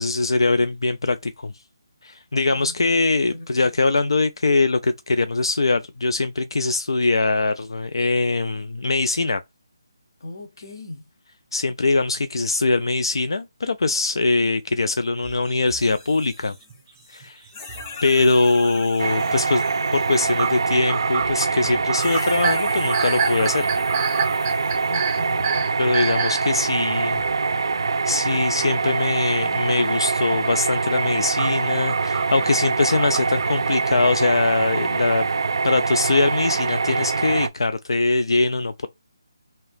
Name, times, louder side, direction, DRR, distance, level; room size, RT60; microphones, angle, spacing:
voice 1, 0.0-1.5 2.0-9.4 11.5-16.5 17.1-17.5 18.0-19.6 19.9-23.7 25.8-27.2 28.1-35.2 35.6-38.9, left 3 dB, 80° left, 0.3 m, -22 dB
voice 2, 2.5-3.0 3.3-3.7 10.2-11.1 24.8-25.7, left 2 dB, 60° left, 0.8 m, -39 dB
sound 1, 15.2-16.9 17.2-18.8 19.2-19.4 19.7-19.8 20.4-26.5 27.2-27.3 29.2-29.3 31.4-33.7, right 7 dB, 20° right, 0.7 m, -29 dB
sound 2, 15.7-17.2 17.5-20.9 21.9-25.6 26.7-26.8 29.8-30.0, left 4 dB, 20° left, 0.5 m, -39 dB
sound 3, 19.0-37.5, right 4 dB, 65° right, 0.3 m, -24 dB
2.8 x 2.7 x 3.3 m
hypercardioid pair, 170°, 2 cm